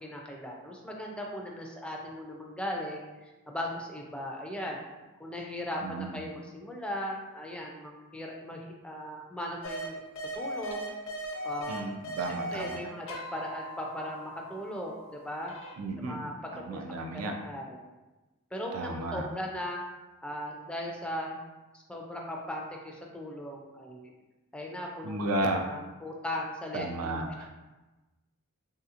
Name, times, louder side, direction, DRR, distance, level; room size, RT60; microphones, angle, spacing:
voice 1, 0.0-4.8 5.2-10.0 10.3-10.9 11.4-11.9 12.3-15.5 16.0-16.8 17.1-17.9 18.5-19.8 20.2-21.4 21.7-24.1 24.5-27.2, left 1 dB, 5° left, -1 dB, 0.3 m, -38 dB
voice 2, 5.8-6.2 11.7-12.9 15.8-17.3 18.7-19.3 25.0-25.6 26.7-27.5, right 2 dB, 90° right, 4 dB, 0.4 m, -33 dB
sound 1, 9.6-9.9 10.2-12.8 13.1-15.7, equal, 65° left, 0.6 m, -39 dB
3.2 x 2.8 x 2.4 m, 1.1 s
head